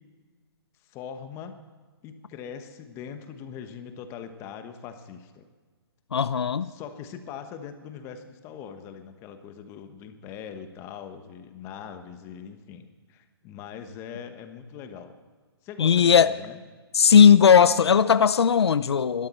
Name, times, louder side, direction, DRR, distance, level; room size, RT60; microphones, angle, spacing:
voice 1, 0.8-1.6 2.0-5.5 6.6-15.1 15.6-16.6, left 7 dB, 20° left, 8 dB, 1.1 m, -41 dB
voice 2, 6.1-6.7 15.8-16.4 16.9-19.3, left 7 dB, 85° left, 15 dB, 0.6 m, -17 dB
22.5 x 12.5 x 4.4 m, 1.4 s
hypercardioid pair, 155°, 13 cm